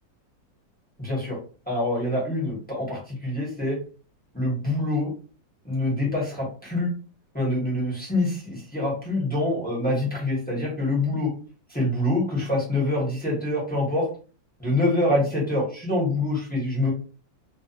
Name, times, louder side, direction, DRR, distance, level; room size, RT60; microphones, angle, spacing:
voice 1, 1.0-1.4 1.7-3.8 4.3-5.1 5.6-6.9 7.3-11.3 11.7-14.1 14.6-16.9, left 1 dB, 5° left, -5 dB, 0.9 m, -25 dB
3.1 x 2.4 x 2.8 m, 0.37 s
omnidirectional pair, 2.0 m